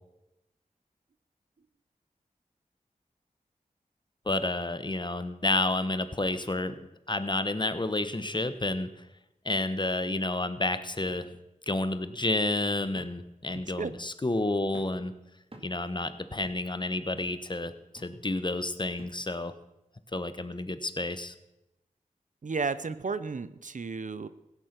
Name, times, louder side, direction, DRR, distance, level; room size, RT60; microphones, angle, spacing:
voice 1, 4.2-6.7 7.1-8.9 9.4-11.3 11.7-15.1 15.6-19.6 20.1-21.3, left 2 dB, 30° left, 11 dB, 1.1 m, -30 dB
sound 1, 11.1-11.3 11.7-11.8 13.0-13.2 13.5-13.8 14.7-15.0 15.5-15.8 16.4-16.7 17.2-17.4 18.0-18.2 19.0-19.3 19.9-20.0, right 1 dB, 40° right, 2.4 m, -51 dB
voice 2, 13.5-13.9 22.4-24.3, right 4 dB, 60° right, 14 dB, 0.7 m, -33 dB
16.0 x 9.6 x 6.0 m, 0.92 s
wide cardioid pair, 50°, 15 cm